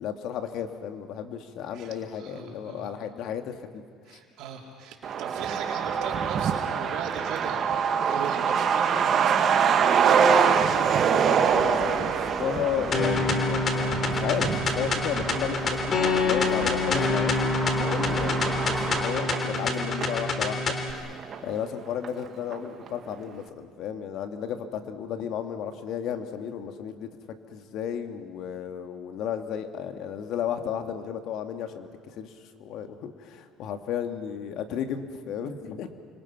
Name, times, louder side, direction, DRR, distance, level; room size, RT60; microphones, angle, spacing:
voice 1, 0.0-3.6 4.1-4.2 11.0-15.9 16.2-17.5 17.8-21.1 21.4-27.1 27.5-32.3 32.6-35.9, left 8 dB, 65° left, 7 dB, 2.1 m, -33 dB
voice 2, 1.7-2.9 4.1-9.6, right 6 dB, 70° right, 0 dB, 4.2 m, -39 dB
Truck, 5.0-20.2 20.5-20.6 20.9-21.8 22.0-22.1 22.5-22.9, right 7 dB, 45° right, 2.1 m, -25 dB
sound 1, 11.5-19.0, right 2 dB, 15° right, 7.0 m, -36 dB
sound 2, 12.9-20.9, left 3 dB, 45° left, 3.2 m, -26 dB
29.5 x 25.5 x 6.0 m, 2.1 s
supercardioid pair, 95°, 0 cm